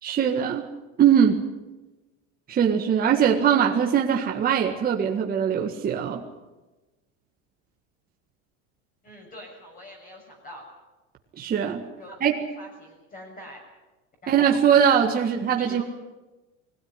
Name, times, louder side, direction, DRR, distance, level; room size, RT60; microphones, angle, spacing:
voice 1, 0.0-0.7 1.0-1.4 2.5-6.2 11.4-11.8 12.2-12.4 14.3-15.8, right 8 dB, 25° right, 1 dB, 1.8 m, -21 dB
voice 2, 9.0-10.7 12.0-13.6 14.2-14.5 15.2-15.8, equal, 25° left, 0 dB, 6.8 m, -44 dB
22.0 x 16.5 x 9.9 m, 1.1 s
cardioid pair, 160°, 35 cm